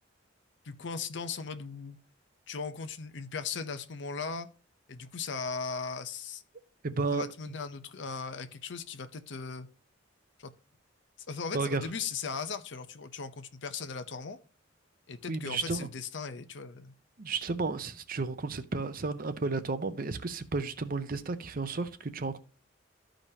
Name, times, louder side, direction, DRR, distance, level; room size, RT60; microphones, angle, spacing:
voice 1, 0.6-2.0 2.5-4.5 4.9-6.4 7.1-9.7 10.4-10.5 11.3-14.4 15.1-16.9, left 5 dB, 65° left, 0.7 m, -38 dB
voice 2, 6.8-7.2 11.5-11.8 15.3-15.9 17.2-22.4, right 3 dB, 50° right, 0.6 m, -32 dB
13.0 x 5.1 x 2.8 m
head